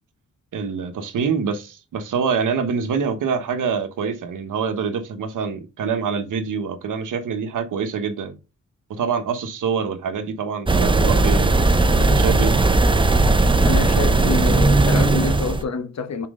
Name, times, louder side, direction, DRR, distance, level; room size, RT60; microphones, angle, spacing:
voice 1, 0.5-8.4 8.9-11.6 12.0-12.5, right 6 dB, 85° right, 1.2 m, -25 dB
sound 1, 10.7-15.6, right 2 dB, 15° right, 0.6 m, -17 dB
voice 2, 13.6-16.3, left 5 dB, 60° left, 1.1 m, -27 dB
6.0 x 4.6 x 3.7 m
cardioid pair, 100°, 31 cm